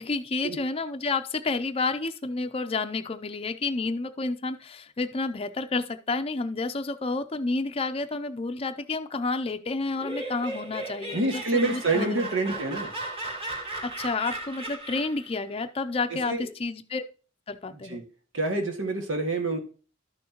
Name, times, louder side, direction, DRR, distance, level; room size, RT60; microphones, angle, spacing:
voice 1, 0.0-12.2 13.8-17.0 17.5-18.0, left 3 dB, 30° left, 8 dB, 0.5 m, -30 dB
Laughter, 9.8-15.3, right 2 dB, 30° right, 2.1 m, -36 dB
voice 2, 11.1-12.9 16.2-16.5 17.7-18.0 18.3-19.6, right 2 dB, 90° right, 3 dB, 1.8 m, -27 dB
12.0 x 6.2 x 2.9 m, 0.38 s
head